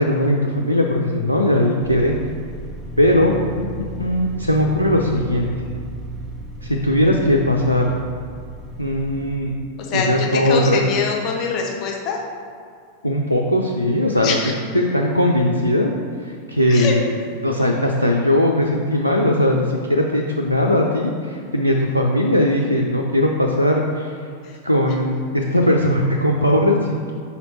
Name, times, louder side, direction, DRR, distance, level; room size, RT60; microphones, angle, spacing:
voice 1, 0.0-2.2 3.0-3.6 4.0-5.5 6.6-7.9 8.8-9.5 9.9-10.8 13.0-14.4 14.7-15.9 16.2-17.1 17.4-24.1 24.6-27.0, left 1 dB, 90° left, 0 dB, 0.4 m, -19 dB
sound 1, 1.8-9.4, right 1 dB, 15° right, 0.7 m, -34 dB
voice 2, 10.5-12.2 14.2-14.5 16.7-16.9 24.4-24.6, left 5 dB, 40° left, 1 dB, 0.8 m, -24 dB
5.5 x 4.2 x 4.3 m, 2.2 s
figure-of-eight pair, 90°, 0 cm